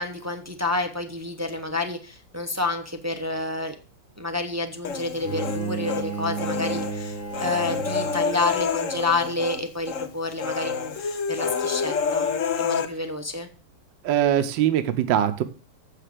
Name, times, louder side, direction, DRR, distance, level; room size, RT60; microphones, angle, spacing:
voice 1, 0.0-3.7 4.2-7.1 7.4-11.0 11.3-12.3 12.6-13.5, left 2 dB, 20° right, 5 dB, 0.4 m, -29 dB
Human voice, 4.8-6.0 6.4-9.6 9.9-10.1 10.4-12.9, left 6 dB, 55° left, 1.0 m, -28 dB
Bowed string instrument, 5.2-8.4, right 4 dB, 10° left, 1.3 m, -32 dB
voice 2, 14.0-15.4, right 10 dB, 75° right, 9 dB, 1.4 m, -22 dB
7.5 x 6.7 x 7.5 m, 0.38 s
omnidirectional pair, 2.1 m